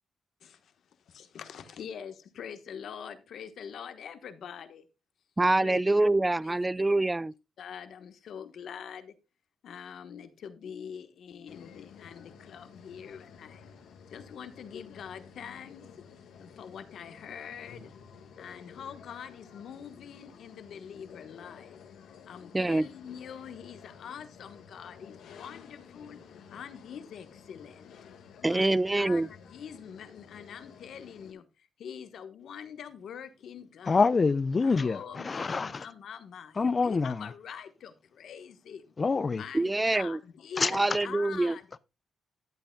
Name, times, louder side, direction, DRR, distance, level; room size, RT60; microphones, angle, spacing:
voice 1, 0.4-0.7 1.0-4.8 5.6-5.8 6.4-6.8 7.6-9.1 9.6-13.7 14.1-16.1 16.4-17.9 18.4-21.8 22.2-26.2 26.5-28.0 28.4-34.0 34.6-38.9 39.3-41.6, left 8 dB, 75° left, 1.2 m, -44 dB
voice 2, 5.4-7.3 22.5-22.8 28.4-29.3 39.5-40.2 40.6-41.6, right 2 dB, 15° right, 0.3 m, -25 dB
sound 1, 11.5-31.3, left 6 dB, 90° left, 1.6 m, -52 dB
voice 3, 33.9-35.8 36.6-37.3 39.0-39.4 40.6-40.7, left 4 dB, 35° left, 0.5 m, -26 dB
13.0 x 8.2 x 2.2 m
cardioid pair, 85°, 0 cm